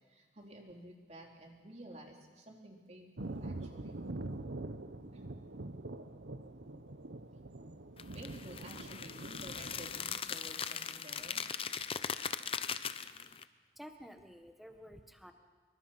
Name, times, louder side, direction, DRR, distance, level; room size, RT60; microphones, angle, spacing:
voice 1, 0.0-4.0 5.1-5.3 8.0-11.4, right 1 dB, 40° right, 1 dB, 3.3 m, -52 dB
Thunder, 3.2-10.2, right 2 dB, 80° right, 1.0 m, -44 dB
sound 1, 8.0-13.4, left 7 dB, 30° left, 0.7 m, -39 dB
voice 2, 13.7-15.3, equal, ahead, 5 dB, 1.5 m, -51 dB
26.0 x 23.5 x 5.8 m, 1.4 s
head